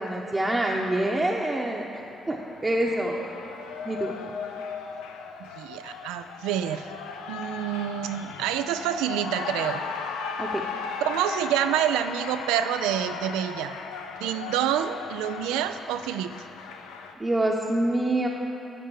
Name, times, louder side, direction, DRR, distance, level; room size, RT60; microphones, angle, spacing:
voice 1, 0.0-1.8 2.3-3.2 3.8-4.1 10.4-10.6 17.2-18.3, right 1 dB, 25° right, -3 dB, 0.9 m, -26 dB
Cheering, 2.0-17.1, left 5 dB, 85° left, 0.5 m, -37 dB
voice 2, 5.6-6.9 7.3-9.8 11.0-13.8 14.2-16.3, right 10 dB, 85° right, 10 dB, 0.3 m, -27 dB
11.0 x 3.7 x 7.0 m, 2.9 s
hypercardioid pair, 50°, 0 cm